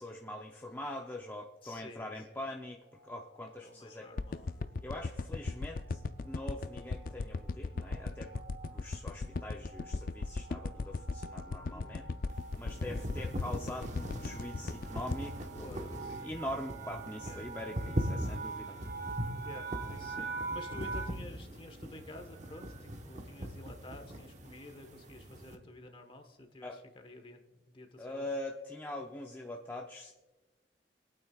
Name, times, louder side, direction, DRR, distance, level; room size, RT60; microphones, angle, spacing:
voice 1, 0.0-4.1 4.8-8.3 8.7-12.1 12.5-19.2 26.6-26.8 28.0-30.1, left 1 dB, 10° left, 0 dB, 0.6 m, -43 dB
voice 2, 1.6-2.4 3.6-4.5 5.3-5.5 11.7-12.2 15.6-16.4 17.2-17.6 18.4-19.0 19.4-28.3, left 1 dB, 30° left, 6 dB, 1.3 m, -51 dB
sound 1, 2.9-3.4 4.2-4.5 4.8-5.0 5.3-21.1, right 4 dB, 65° right, 1.9 m, -46 dB
sound 2, 4.2-16.5 16.9-17.0, left 3 dB, 50° left, 0.4 m, -37 dB
sound 3, 12.3-25.6, equal, 40° right, 1.1 m, -41 dB
22.5 x 8.9 x 2.4 m, 1.1 s
head